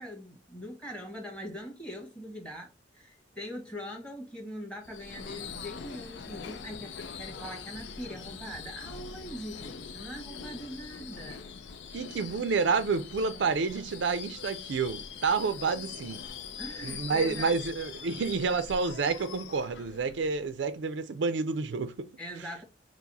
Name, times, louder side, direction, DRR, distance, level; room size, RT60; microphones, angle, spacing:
voice 1, 0.0-11.4 16.6-17.6 22.2-22.6, equal, 5° left, 1.4 m, -42 dB
Subway metro underground / Screech, 4.8-20.8, left 6 dB, 75° left, 0.5 m, -43 dB
voice 2, 11.9-16.3 16.8-22.1, right 4 dB, 80° right, 0.4 m, -29 dB
4.6 x 2.0 x 4.1 m
head